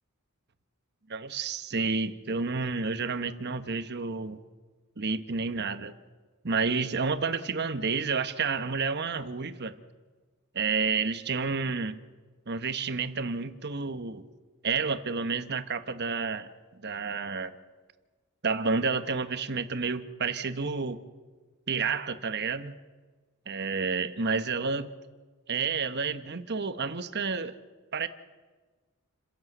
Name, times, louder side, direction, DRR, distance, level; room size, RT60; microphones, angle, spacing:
voice 1, 1.1-4.4 5.0-5.9 6.4-9.7 10.5-12.0 12.5-14.2 14.6-17.5 18.4-21.0 21.7-22.7 23.5-24.9 25.5-27.5 27.9-28.1, right 4 dB, 50° right, 11 dB, 1.1 m, -30 dB
29.0 x 11.0 x 8.0 m, 1.3 s
head